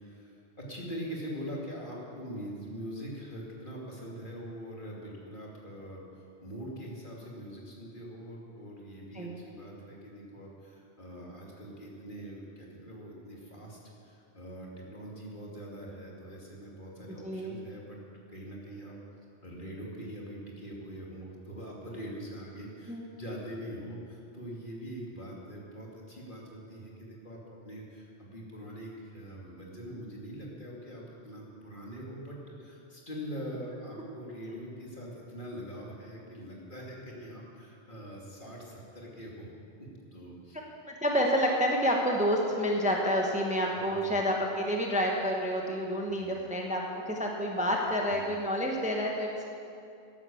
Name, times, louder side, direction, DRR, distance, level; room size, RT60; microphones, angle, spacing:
voice 1, 0.0-18.0 18.3-19.0 19.4-39.5 39.8-40.6 43.9-44.2 46.1-46.4 48.1-48.2, equal, 45° left, -3 dB, 2.8 m, -43 dB
voice 2, 17.2-17.6 22.9-23.0 34.5-34.6 40.5-49.5, equal, 5° right, 0 dB, 1.2 m, -29 dB
13.5 x 11.0 x 7.1 m, 2.6 s
omnidirectional pair, 1.2 m